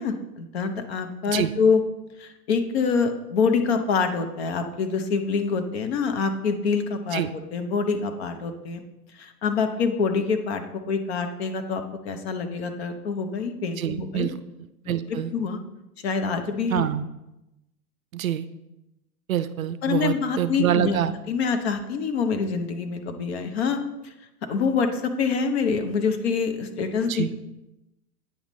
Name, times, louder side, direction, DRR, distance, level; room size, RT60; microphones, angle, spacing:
voice 1, 0.0-1.8 2.2-7.2 7.5-8.8 9.1-14.3 14.9-15.0 15.3-15.6 16.0-16.9 19.8-21.0 21.3-24.1 24.5-27.2, left 5 dB, 40° left, 7 dB, 0.8 m, -26 dB
voice 2, 13.8-14.3 14.9-15.3 16.7-17.0 18.1-18.4 19.3-21.1 27.1-27.3, right 11 dB, 60° right, 12 dB, 0.5 m, -26 dB
8.8 x 5.1 x 3.1 m, 0.94 s
hypercardioid pair, 120°, 48 cm